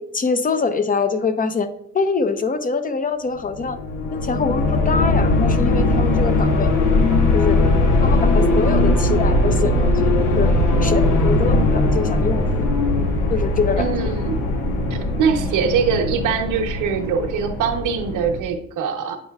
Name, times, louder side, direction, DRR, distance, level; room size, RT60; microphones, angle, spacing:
voice 1, 0.0-1.7 1.9-3.8 4.1-6.7 7.3-7.6 8.0-10.5 10.8-12.5 13.3-13.9, left 4 dB, 30° left, 10 dB, 0.7 m, -24 dB
sound 1, 3.5-18.4, left 2 dB, 80° left, 1.1 m, -19 dB
voice 2, 13.8-14.5 14.9-19.2, right 6 dB, 90° right, 4 dB, 0.9 m, -23 dB
9.1 x 5.4 x 2.4 m, 0.72 s
cardioid pair, 90°, 30 cm